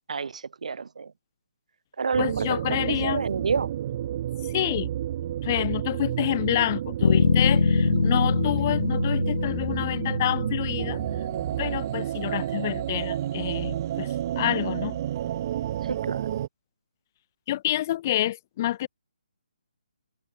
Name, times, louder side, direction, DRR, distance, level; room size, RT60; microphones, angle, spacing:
voice 1, 0.1-1.1 2.0-3.7 15.8-16.4, right 5 dB, 50° right, 2.7 m, -29 dB
sound 1, 2.1-16.5, right 11 dB, 20° right, 2.4 m, -30 dB
voice 2, 2.2-3.2 4.4-4.9 5.4-11.0 11.6-15.0 17.5-18.9, left 13 dB, 20° left, 0.9 m, -28 dB
Bass guitar, 7.0-11.4, left 5 dB, 55° left, 1.3 m, -24 dB
hypercardioid pair, 175°, 5 cm